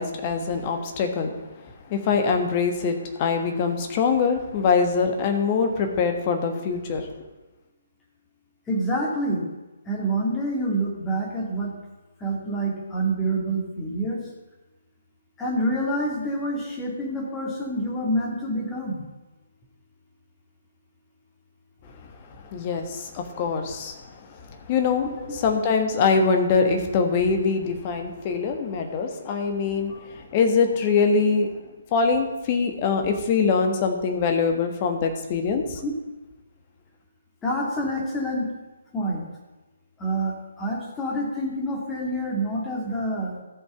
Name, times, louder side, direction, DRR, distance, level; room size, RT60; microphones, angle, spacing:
voice 1, 0.0-1.3 1.6-7.2 22.5-25.0 25.4-31.5 31.9-35.8, left 5 dB, 30° left, 5 dB, 1.4 m, -23 dB
voice 2, 8.7-9.5 9.9-11.7 12.2-14.2 15.4-19.1 25.1-25.3 29.9-30.0 35.8-35.9 37.4-38.5 38.9-39.3 40.0-43.4, right 1 dB, 15° left, -2 dB, 2.2 m, -27 dB
13.5 x 5.6 x 6.8 m, 1.1 s
figure-of-eight pair, 135°, 0 cm